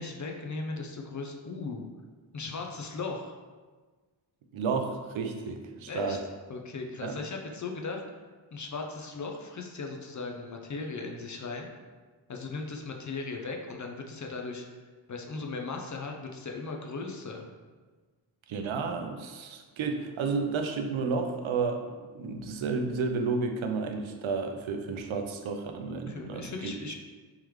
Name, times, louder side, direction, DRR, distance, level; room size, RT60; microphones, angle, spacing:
voice 1, 0.0-1.9 2.3-3.3 5.9-6.2 6.5-8.0 8.5-11.7 12.3-14.7 15.1-17.5 25.9-27.0, left 3 dB, 40° left, 2 dB, 0.5 m, -37 dB
voice 2, 4.5-6.2 7.0-7.2 18.5-26.7, right 4 dB, 75° right, 5 dB, 0.6 m, -32 dB
3.5 x 3.2 x 3.1 m, 1.4 s
wide cardioid pair, 85°, 48 cm